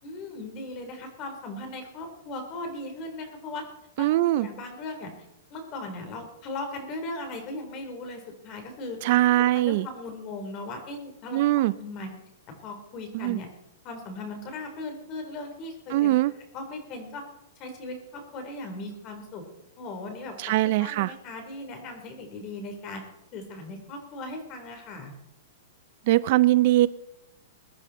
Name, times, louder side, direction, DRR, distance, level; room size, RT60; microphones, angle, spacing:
voice 1, 0.0-3.6 4.0-5.1 5.5-9.0 9.4-11.4 11.7-12.1 12.6-13.5 13.8-17.2 17.6-19.5 19.8-20.5 20.8-23.0 23.3-25.1, left 2 dB, 30° left, 5 dB, 3.7 m, -38 dB
voice 2, 4.0-4.5 9.0-9.9 11.3-11.7 13.2-13.4 15.9-16.3 20.4-21.1 26.1-26.9, right 16 dB, 45° right, 17 dB, 0.4 m, -21 dB
22.0 x 10.0 x 4.2 m, 0.82 s
hypercardioid pair, 160°, 0 cm